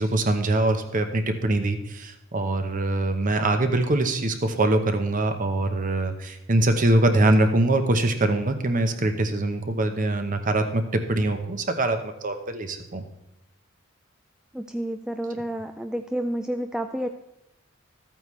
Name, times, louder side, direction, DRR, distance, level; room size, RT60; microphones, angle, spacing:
voice 1, 0.0-13.0, right 2 dB, 40° right, 7 dB, 0.9 m, -23 dB
voice 2, 14.5-17.1, right 1 dB, 5° right, 6 dB, 0.3 m, -30 dB
14.0 x 8.9 x 3.2 m, 0.87 s
head